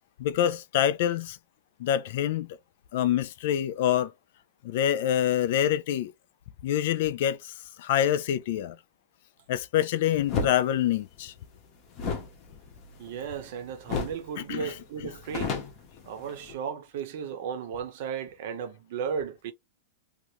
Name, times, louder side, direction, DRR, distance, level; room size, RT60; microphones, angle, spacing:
voice 1, 0.2-1.4 1.8-2.5 2.9-4.1 4.6-6.1 6.6-8.7 9.5-11.3 14.4-15.1, left 11 dB, 50° left, 0.4 m, -26 dB
sound 1, 10.3-10.6 11.9-13.5 13.9-14.3 14.6-14.7 15.0-16.5, left 5 dB, 25° left, 0.8 m, -32 dB
voice 2, 13.0-15.6 16.0-19.5, right 7 dB, 45° right, 0.8 m, -35 dB
2.8 x 2.5 x 3.0 m
supercardioid pair, 175°, 0 cm